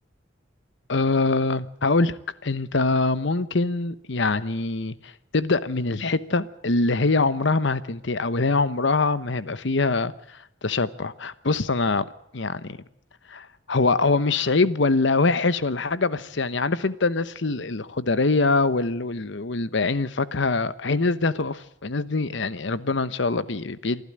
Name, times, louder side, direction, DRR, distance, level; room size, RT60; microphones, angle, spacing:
voice 1, 0.9-10.1 10.6-12.8 13.3-24.0, left 3 dB, 70° left, 1.0 m, -24 dB
27.0 x 12.0 x 8.8 m
head